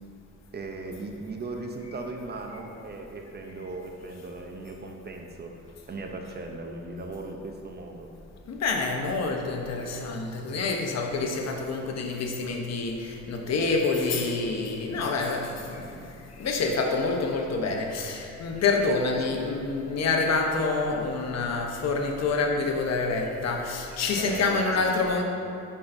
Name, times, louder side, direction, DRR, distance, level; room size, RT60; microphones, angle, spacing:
voice 1, 0.5-8.1 15.7-16.0 17.0-17.1 18.9-19.3 24.2-24.9, right 3 dB, 35° right, 3 dB, 0.7 m, -38 dB
voice 2, 8.5-15.9 16.4-25.2, left 3 dB, 60° left, 2 dB, 0.9 m, -27 dB
10.0 x 5.5 x 2.7 m, 2.7 s
cardioid pair, 90°, 30 cm